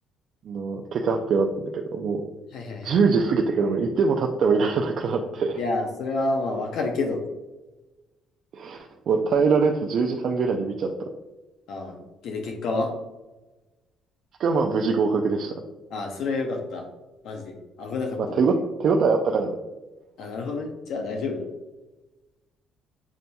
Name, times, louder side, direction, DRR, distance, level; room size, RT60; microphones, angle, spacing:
voice 1, 0.4-2.2 2.8-5.5 8.5-10.9 14.4-15.5 18.4-19.6, right 4 dB, 60° right, 2 dB, 0.4 m, -23 dB
voice 2, 2.5-3.0 5.6-7.2 11.7-12.9 15.9-16.8 17.2-18.5 20.2-21.5, left 3 dB, 75° left, 2 dB, 0.5 m, -29 dB
7.0 x 2.6 x 2.2 m, 1.1 s
cardioid pair, 105°, 0 cm